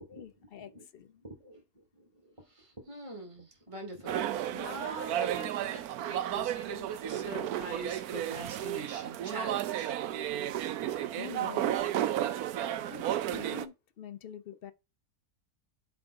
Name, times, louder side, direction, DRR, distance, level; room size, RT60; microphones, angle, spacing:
voice 1, 0.1-1.2 10.8-11.7 12.9-14.7, left 9 dB, 55° left, 0.7 m, -46 dB
voice 2, 1.2-10.0 10.6-10.8, right 1 dB, 20° right, 2.6 m, -44 dB
sound 1, 4.1-13.7, right 11 dB, 90° right, 1.1 m, -33 dB
7.5 x 3.6 x 4.6 m
omnidirectional pair, 1.5 m